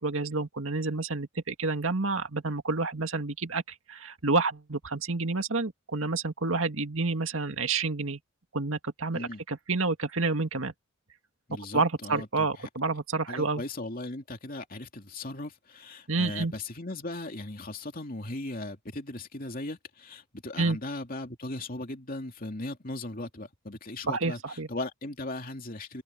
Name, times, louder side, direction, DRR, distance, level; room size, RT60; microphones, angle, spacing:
voice 1, 0.0-8.2 8.5-10.7 11.7-13.6 16.1-16.5 20.6-20.8 24.1-24.7, right 3 dB, 70° right, 2.0 m, -29 dB
voice 2, 11.5-12.5 13.3-26.0, left 2 dB, 40° left, 2.9 m, -38 dB
open air
head